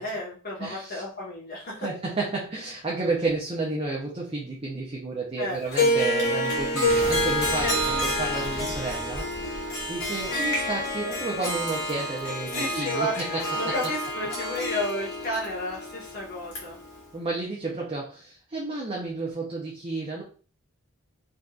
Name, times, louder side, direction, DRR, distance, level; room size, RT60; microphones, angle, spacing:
voice 1, 0.0-1.9 5.4-5.7 7.6-7.8 12.5-16.8, left 1 dB, 45° left, -5 dB, 1.3 m, -32 dB
voice 2, 0.6-1.0 1.8-13.5 17.1-20.2, right 3 dB, 25° right, -3 dB, 0.5 m, -31 dB
Harp, 5.7-17.0, left 1 dB, 60° left, 1.1 m, -28 dB
sound 1, 6.1-14.9 15.2-16.0 16.3-16.9 17.3-17.4, left 1 dB, 90° left, 1.5 m, -41 dB
sound 2, 6.8-11.8 12.1-12.2, right 2 dB, 75° right, 0.6 m, -38 dB
3.6 x 2.7 x 2.4 m, 0.39 s
head